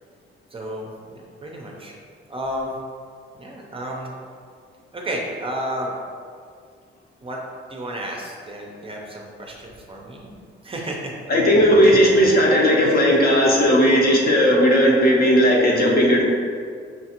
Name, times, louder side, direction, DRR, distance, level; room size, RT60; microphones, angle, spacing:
voice 1, 0.5-1.9 2.3-2.8 3.3-4.1 4.9-5.9 7.2-7.4 7.7-11.1, right 1 dB, 25° right, -1 dB, 0.5 m, -32 dB
voice 2, 11.3-16.2, equal, 45° left, -2 dB, 0.7 m, -16 dB
5.7 x 2.4 x 2.8 m, 2.1 s
cardioid pair, 115°, 21 cm